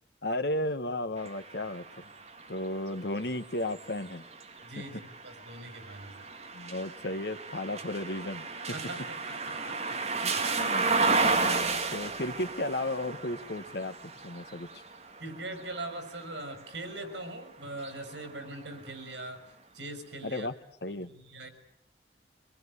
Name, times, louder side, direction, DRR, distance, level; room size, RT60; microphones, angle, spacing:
voice 1, 0.2-2.1 2.5-4.2 6.5-8.5 10.2-14.7 20.2-20.5 20.8-21.1, left 1 dB, 65° left, 10 dB, 1.5 m, -34 dB
sound 1, 1.2-17.1 17.7-18.9, right 3 dB, 35° right, 2.0 m, -34 dB
voice 2, 4.6-6.3 8.7-9.1 9.5-10.0 15.2-19.4 19.7-20.5 21.1-21.5, right 2 dB, 85° right, 7 dB, 5.8 m, -41 dB
24.5 x 21.0 x 9.8 m, 0.72 s
head